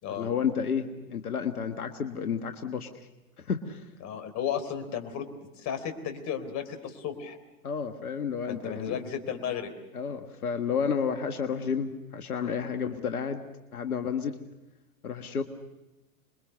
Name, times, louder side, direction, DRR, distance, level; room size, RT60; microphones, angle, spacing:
voice 1, 0.2-3.1 3.4-3.9 7.6-9.0 9.9-13.4 13.7-14.4 15.0-15.4, left 6 dB, 85° left, 6 dB, 1.6 m, -31 dB
voice 2, 4.0-5.3 5.6-7.4 8.5-9.7, left 8 dB, 40° left, 9 dB, 3.7 m, -34 dB
27.0 x 22.0 x 6.7 m, 1.0 s
hypercardioid pair, 100°, 43 cm